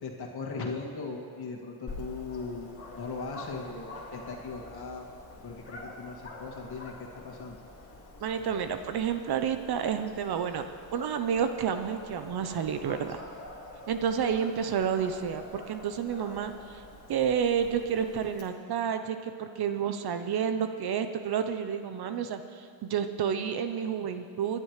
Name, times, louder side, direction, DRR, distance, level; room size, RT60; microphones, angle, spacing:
voice 1, 0.0-2.7 3.0-5.0 5.4-7.6, left 4 dB, 50° left, -2 dB, 2.4 m, -38 dB
Dog, 1.9-18.4, left 2 dB, 25° left, 2.4 m, -46 dB
voice 2, 8.2-10.7 10.9-13.2 13.9-16.8 17.1-24.6, right 7 dB, 50° right, 8 dB, 0.9 m, -30 dB
21.5 x 11.0 x 3.3 m, 2.3 s
supercardioid pair, 85°, 49 cm